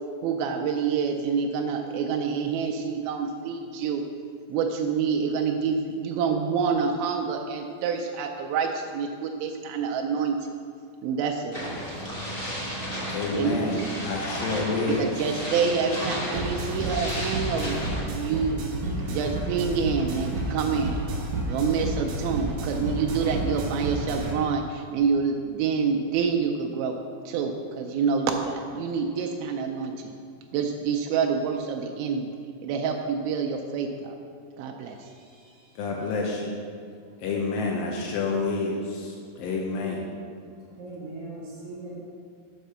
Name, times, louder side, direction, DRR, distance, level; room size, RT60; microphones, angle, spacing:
voice 1, 0.2-4.0 4.5-10.6 11.0-11.6 13.4-13.9 15.0-17.8 18.1-18.6 19.1-21.0 21.5-27.0 27.3-30.1 30.5-32.3 32.6-34.2 34.6-35.0, right 6 dB, 90° right, 3 dB, 2.4 m, -27 dB
sound 1, 11.5-18.0, equal, 30° left, 0.6 m, -33 dB
voice 2, 13.1-15.4 35.8-36.6 37.2-40.1, left 3 dB, 80° left, -1 dB, 2.5 m, -29 dB
sound 2, 16.3-24.3, right 1 dB, 70° right, 2.1 m, -31 dB
voice 3, 35.1-35.6 40.7-42.0, right 2 dB, 50° right, -8 dB, 2.2 m, -40 dB
6.3 x 5.0 x 6.8 m, 2.2 s
omnidirectional pair, 4.2 m